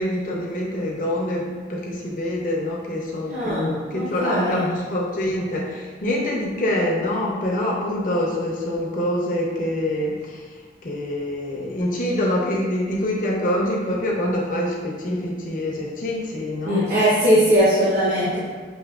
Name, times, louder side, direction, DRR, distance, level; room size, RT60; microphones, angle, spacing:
voice 1, 0.0-10.5 10.8-17.0, left 1 dB, 45° left, -2 dB, 0.6 m, -25 dB
voice 2, 3.3-4.7 16.6-18.4, equal, 45° right, -8 dB, 0.8 m, -20 dB
6.2 x 2.7 x 2.3 m, 1.5 s
head